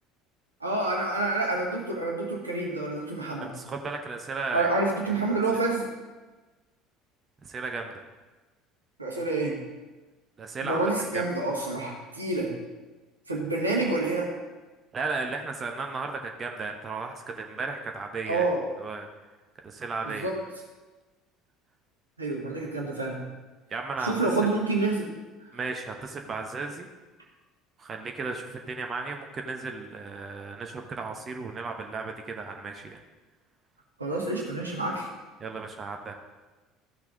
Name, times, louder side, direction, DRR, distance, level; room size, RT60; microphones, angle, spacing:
voice 1, 0.6-3.5 4.5-5.9 9.0-9.5 10.6-12.5 13.3-14.3 18.2-18.6 20.0-20.4 22.2-23.2 24.0-25.1 34.0-35.1, right 2 dB, 85° right, -1 dB, 1.4 m, -28 dB
voice 2, 3.4-4.7 5.0-5.1 7.4-8.0 10.4-10.8 11.1-11.2 14.9-18.5 18.8-19.1 19.6-20.3 23.7-24.1 25.5-26.9 27.8-33.0 35.4-36.1, right 4 dB, 30° right, 4 dB, 0.9 m, -35 dB
14.0 x 6.0 x 3.8 m, 1.2 s
figure-of-eight pair, 60°, 0 cm